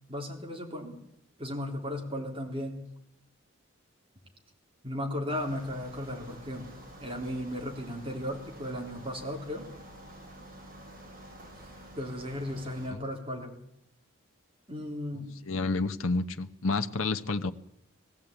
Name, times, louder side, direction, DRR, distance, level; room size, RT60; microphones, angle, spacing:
voice 1, 0.1-1.0 1.4-2.8 4.8-6.7 7.0-9.7 12.0-13.6 14.7-15.3, left 1 dB, 25° right, 1 dB, 3.6 m, -35 dB
sound 1, 5.3-12.9, right 1 dB, 45° right, 6.7 m, -49 dB
voice 2, 15.4-17.5, left 3 dB, 80° left, 8 dB, 1.0 m, -29 dB
19.5 x 15.5 x 8.9 m, 0.76 s
head